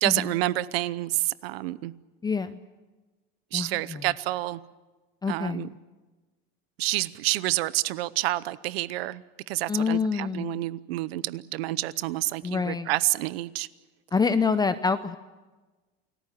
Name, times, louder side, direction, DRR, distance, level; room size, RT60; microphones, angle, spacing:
voice 1, 0.0-1.9 3.5-4.6 5.3-5.7 6.8-13.7, right 17 dB, 90° right, 18 dB, 0.8 m, -28 dB
voice 2, 2.2-2.6 3.5-4.0 5.2-5.7 9.7-10.6 12.4-12.9 14.1-15.2, left 5 dB, 15° left, 11 dB, 0.7 m, -26 dB
29.0 x 19.5 x 7.4 m, 1.2 s
supercardioid pair, 125°, 29 cm